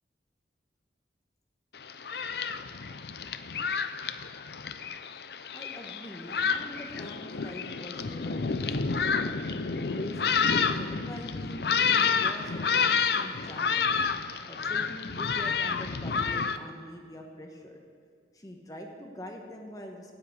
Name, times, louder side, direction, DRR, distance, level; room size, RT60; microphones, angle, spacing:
Thunderstorm, 1.8-16.6, left 5 dB, 60° left, 0.6 m, -29 dB
voice 1, 5.5-9.5 9.9-13.9 14.5-17.8 18.3-20.1, equal, 20° left, 2 dB, 1.2 m, -44 dB
12.5 x 9.0 x 8.7 m, 2.1 s
head